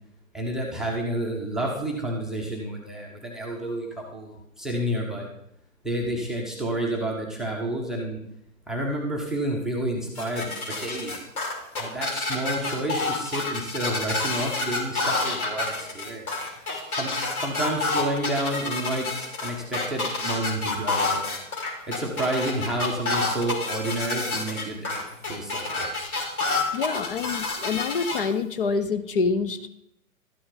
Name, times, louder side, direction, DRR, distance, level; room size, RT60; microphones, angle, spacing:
voice 1, 0.3-5.3 5.8-8.2 8.7-11.2 11.8-16.3 16.9-21.4 21.9-25.0 25.3-25.9, right 1 dB, ahead, -1 dB, 0.7 m, -30 dB
sound 1, 10.2-28.2, left 3 dB, 90° left, 3.0 m, -28 dB
voice 2, 26.7-29.7, left 4 dB, 40° left, 11 dB, 0.7 m, -26 dB
12.5 x 8.5 x 3.9 m, 0.77 s
hypercardioid pair, 135°, 42 cm